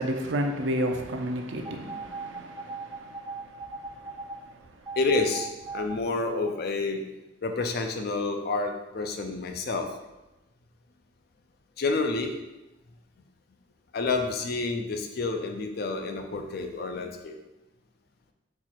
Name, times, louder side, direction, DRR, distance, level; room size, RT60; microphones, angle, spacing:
voice 1, 0.0-5.0 5.7-5.8, equal, 65° right, 0.5 m, -33 dB
sound 1, 1.7-4.4 4.9-6.0 6.5-6.6, right 4 dB, 15° right, 0.5 m, -37 dB
voice 2, 5.0-7.0 7.4-9.9 11.8-12.3 13.9-17.4, left 3 dB, 50° left, 0.4 m, -29 dB
4.4 x 2.4 x 4.2 m
head